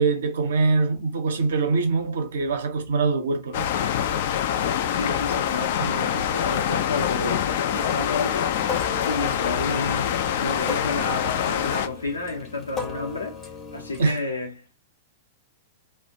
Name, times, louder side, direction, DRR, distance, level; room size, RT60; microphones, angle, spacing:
voice 1, 0.0-3.6 5.8-6.0 14.0-14.2, right 4 dB, 65° right, 0.6 m, -23 dB
sound 1, 3.5-11.9, left 9 dB, 50° left, 0.3 m, -25 dB
voice 2, 4.9-8.6 8.9-13.4 13.7-14.8, left 3 dB, 80° left, 0.7 m, -31 dB
sound 2, 7.7-14.1, left 4 dB, 20° left, 0.6 m, -37 dB
2.4 x 2.1 x 2.6 m
figure-of-eight pair, 100°, 0 cm